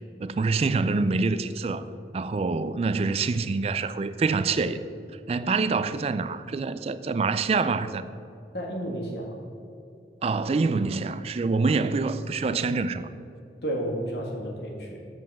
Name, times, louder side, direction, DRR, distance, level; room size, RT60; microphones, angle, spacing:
voice 1, 0.2-1.8 2.1-4.8 5.3-8.0 10.2-13.1, right 4 dB, 35° right, 0.3 m, -26 dB
voice 2, 8.5-9.3 13.6-15.0, right 1 dB, 75° left, 1.7 m, -31 dB
7.7 x 5.1 x 7.1 m
head